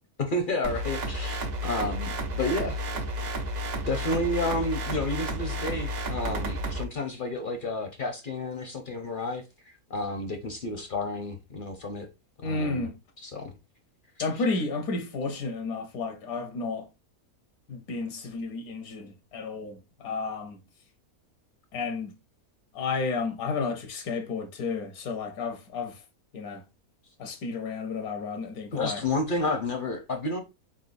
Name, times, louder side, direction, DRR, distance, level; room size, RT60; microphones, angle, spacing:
voice 1, 0.2-3.3 3.9-12.1 12.4-12.9 13.2-13.5 28.7-30.4, left 2 dB, 50° left, 0.6 m, -31 dB
sound 1, 0.6-6.8, right 1 dB, 55° right, 0.4 m, -32 dB
voice 2, 12.4-12.9 14.2-16.9 17.7-20.6 21.7-22.1 22.7-26.0 26.3-26.6 27.2-29.0, left 4 dB, 75° left, 1.2 m, -32 dB
4.3 x 3.8 x 2.5 m
omnidirectional pair, 1.6 m